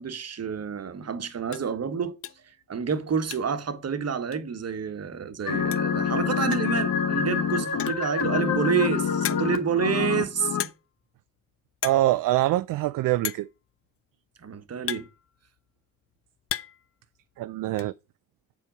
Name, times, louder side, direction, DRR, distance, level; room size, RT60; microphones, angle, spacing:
voice 1, 0.0-2.2 2.7-10.6 14.4-15.1, right 7 dB, 35° right, 1.3 m, -28 dB
sound 1, 0.5-0.7 1.1-1.2 1.5-1.7 2.2-2.5 2.8-3.7 3.9-4.0 4.3-4.4 5.4-5.5 5.7-6.0 6.5-6.8 7.6-8.1 8.7-8.8 9.2-9.7 10.6-11.0 11.3-11.5 11.7-12.1 12.3-12.4 13.2-13.6 14.4-15.7 16.1-16.9 17.1-17.9, left 10 dB, 35° left, 0.5 m, -35 dB
sound 2, 5.5-10.6, left 7 dB, 50° left, 1.4 m, -26 dB
voice 2, 11.8-13.5 17.4-17.9, right 15 dB, 50° right, 0.4 m, -24 dB
8.3 x 4.5 x 5.1 m
hypercardioid pair, 60°, 43 cm